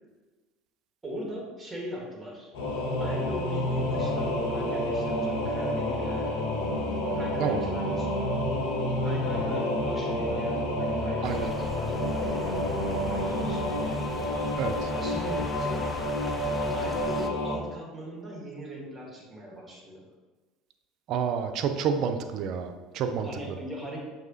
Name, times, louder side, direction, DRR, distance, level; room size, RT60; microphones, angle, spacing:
voice 1, 1.0-2.5 3.0-6.6 7.1-8.2 9.0-14.0 14.9-15.8 16.7-20.1 23.2-24.0, equal, 10° right, -1 dB, 1.2 m, -40 dB
Singing / Musical instrument, 2.5-17.6, left 1 dB, 70° left, 0.7 m, -29 dB
sound 1, 11.2-17.3, left 1 dB, 10° left, 0.4 m, -40 dB
voice 2, 14.6-14.9 21.1-23.3, right 6 dB, 55° right, 7 dB, 0.4 m, -29 dB
5.9 x 2.7 x 2.6 m, 1.2 s
hypercardioid pair, 75°, 0 cm